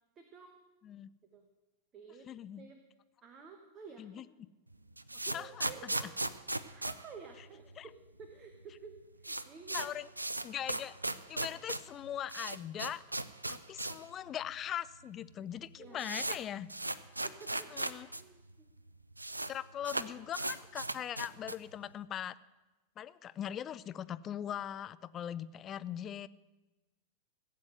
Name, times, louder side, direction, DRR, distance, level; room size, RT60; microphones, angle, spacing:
voice 1, 0.2-0.6 1.3-1.5 1.9-2.3 2.6-2.8 3.2-4.2 5.1-6.1 6.7-9.9 11.4-11.5 15.8-16.2 17.2-17.9 18.2-18.7, right 5 dB, 30° right, 5 dB, 1.3 m, -52 dB
voice 2, 2.3-2.7 4.0-4.2 5.3-5.9 7.8-7.9 9.7-10.1 10.4-11.0 11.3-13.0 13.5-16.7 17.7-18.1 19.5-22.4 23.0-26.3, left 10 dB, 30° left, 16 dB, 0.4 m, -40 dB
sound 1, 4.7-8.3 8.5-8.6 8.9-14.1 14.4-14.5 15.2-15.3 15.5-18.2 18.5-18.6 18.8-19.5 19.8-21.7, right 2 dB, 85° right, 0.5 m, -37 dB
16.0 x 7.5 x 7.7 m, 1.1 s
figure-of-eight pair, 90°, 0 cm